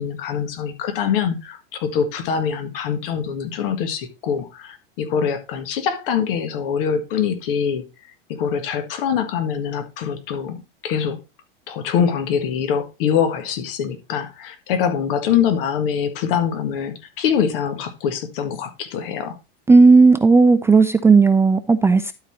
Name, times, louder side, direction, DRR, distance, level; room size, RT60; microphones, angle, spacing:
voice 1, 0.0-11.2 11.7-19.4, left 7 dB, 70° left, 1.7 m, -24 dB
voice 2, 19.7-22.1, right 4 dB, 10° right, 0.4 m, -13 dB
12.0 x 4.2 x 4.3 m
supercardioid pair, 115°, 29 cm